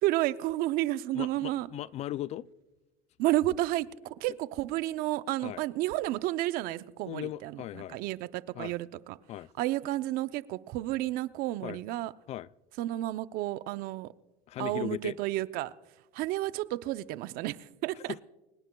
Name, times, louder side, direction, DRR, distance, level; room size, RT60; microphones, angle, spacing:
voice 1, 0.0-1.7 3.2-9.2 9.6-12.1 12.8-14.1 14.6-15.7 16.1-18.1, right 16 dB, 60° right, 0.6 m, -31 dB
voice 2, 1.1-2.5 5.4-5.6 7.1-8.0 8.5-8.7 9.3-9.5 11.6-11.8 12.3-12.5 14.5-15.2 18.0-18.2, left 13 dB, 40° left, 0.4 m, -38 dB
24.0 x 20.0 x 2.3 m
supercardioid pair, 120°, 17 cm